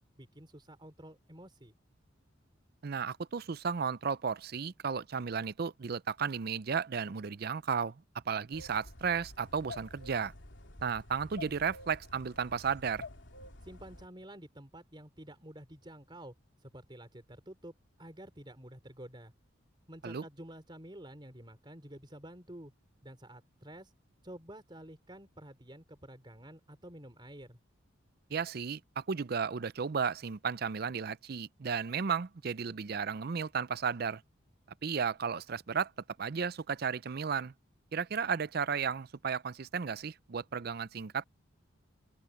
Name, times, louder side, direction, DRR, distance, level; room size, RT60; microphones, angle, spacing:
voice 1, 0.2-1.7 13.6-16.3 16.6-19.3 19.9-22.7 23.0-23.9 24.2-27.6, right 1 dB, 25° right, 3.6 m, -50 dB
voice 2, 2.8-8.0 8.3-10.3 10.8-13.1 20.0-20.2 28.3-34.2 34.8-35.9 36.2-37.5 37.9-41.2, right 6 dB, 50° right, 0.5 m, -34 dB
sound 1, 8.5-14.1, left 2 dB, 65° left, 2.7 m, -49 dB
open air
head